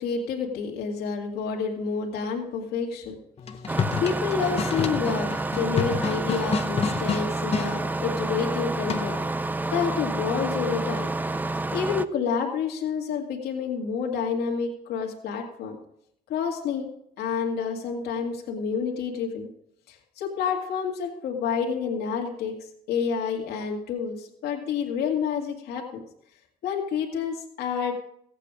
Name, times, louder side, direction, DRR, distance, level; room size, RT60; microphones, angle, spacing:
voice 1, 0.0-3.1 3.7-9.2 9.7-11.1 11.7-15.8 16.3-16.9 17.2-19.5 19.9-26.0 26.6-27.9, left 6 dB, 70° left, 1 dB, 2.3 m, -29 dB
sound 1, 3.4-7.7 8.9-9.3, left 6 dB, 35° left, 0.9 m, -29 dB
Engine starting, 3.7-12.0, right 2 dB, 10° right, 0.4 m, -29 dB
15.0 x 8.4 x 4.9 m, 0.74 s
cardioid pair, 110°, 17 cm